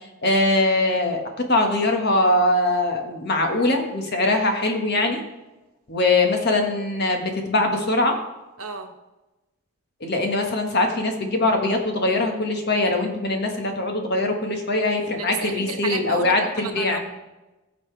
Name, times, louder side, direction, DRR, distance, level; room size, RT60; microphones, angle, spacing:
voice 1, 0.2-5.2 5.9-8.2 10.0-17.0, left 2 dB, 50° left, 3 dB, 1.6 m, -22 dB
voice 2, 8.6-8.9 15.1-17.0, right 5 dB, 90° right, 5 dB, 1.3 m, -32 dB
17.0 x 7.0 x 3.4 m, 1.1 s
head